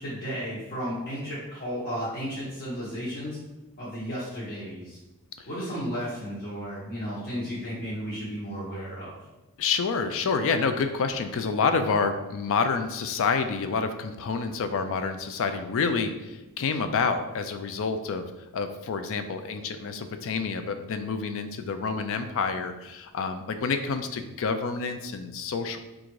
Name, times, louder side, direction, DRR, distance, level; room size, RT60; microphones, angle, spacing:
voice 1, 0.0-3.4 3.8-5.0 5.5-9.1, equal, 45° left, -8 dB, 1.0 m, -33 dB
voice 2, 9.6-18.3 18.5-25.8, left 5 dB, 60° left, 8 dB, 0.4 m, -28 dB
3.7 x 2.5 x 4.6 m, 1.1 s
head